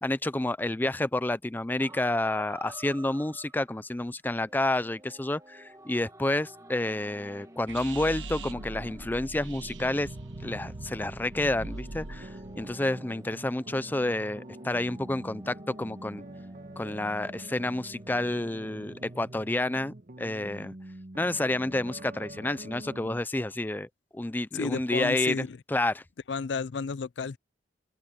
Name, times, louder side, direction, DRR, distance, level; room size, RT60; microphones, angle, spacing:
voice 1, 0.0-10.1 10.4-16.2 16.8-20.7 21.2-26.0, left 1 dB, 10° left, 0.4 m, -30 dB
sound 1, 1.8-4.0 4.4-19.8, right 1 dB, 20° right, 1.7 m, -51 dB
sound 2, 7.7-12.8, right 2 dB, 80° right, 1.2 m, -41 dB
sound 3, 11.6-23.2, right 1 dB, 45° right, 1.3 m, -45 dB
voice 2, 24.5-25.6 26.3-27.4, left 5 dB, 70° left, 0.4 m, -32 dB
open air
head